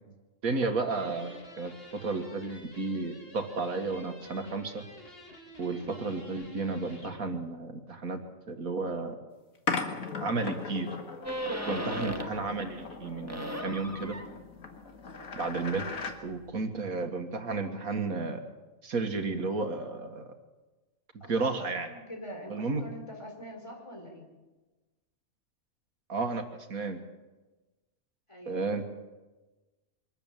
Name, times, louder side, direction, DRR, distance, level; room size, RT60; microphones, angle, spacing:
voice 1, 0.4-4.8 5.6-9.2 10.2-10.9 11.6-14.2 15.4-15.9 16.2-18.4 18.8-20.3 21.3-21.9 22.5-22.8 26.1-26.4 26.7-27.0 28.5-28.8, right 3 dB, 85° right, 6 dB, 2.2 m, -32 dB
sound 1, 0.8-7.2, left 1 dB, 45° left, 3.0 m, -50 dB
sound 2, 9.7-16.2, left 4 dB, 75° left, 2.2 m, -38 dB
sound 3, 11.2-12.5 12.8-16.5, equal, 10° right, 1.6 m, -38 dB
voice 2, 21.2-24.2 28.3-28.7, equal, 20° left, 1 dB, 4.7 m, -44 dB
24.0 x 13.0 x 9.1 m, 1.2 s
omnidirectional pair, 1.5 m